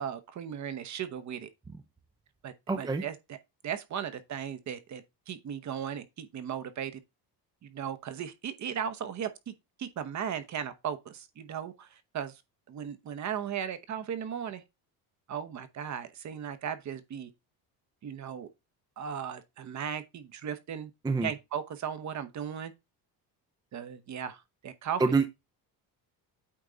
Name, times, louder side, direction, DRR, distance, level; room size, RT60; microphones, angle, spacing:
voice 1, 0.0-1.5 2.4-3.4 3.6-7.0 7.6-9.5 9.8-12.4 12.7-14.6 15.3-17.3 18.0-18.5 19.0-20.9 21.2-22.7 23.7-25.2, right 8 dB, 45° right, 0.9 m, -37 dB
voice 2, 2.7-3.0 21.0-21.3 25.0-25.3, right 4 dB, 10° right, 0.5 m, -26 dB
8.7 x 3.6 x 3.9 m
cardioid pair, 130°, 41 cm